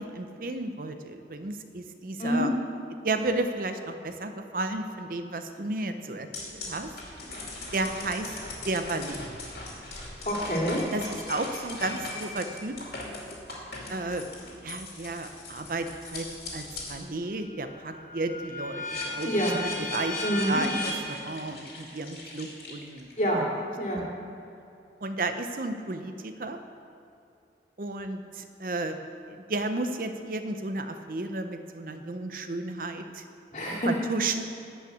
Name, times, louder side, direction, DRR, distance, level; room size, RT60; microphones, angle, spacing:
voice 1, 0.0-2.5 3.0-6.9 7.7-8.3 8.6-9.3 10.9-12.8 13.9-14.3 14.6-16.3 16.5-19.4 19.8-23.1 25.0-26.6 27.8-29.0 29.3-33.2 33.9-34.5, right 2 dB, 50° right, 7 dB, 0.6 m, -33 dB
sound 1, 6.3-17.0 17.5-23.1, left 2 dB, 60° left, 2.5 m, -38 dB
voice 2, 10.3-10.8 19.3-19.5 20.2-20.6 23.2-23.5 23.8-24.0 33.5-33.9, equal, 45° left, -3 dB, 2.4 m, -26 dB
12.0 x 5.7 x 8.5 m, 2.7 s
head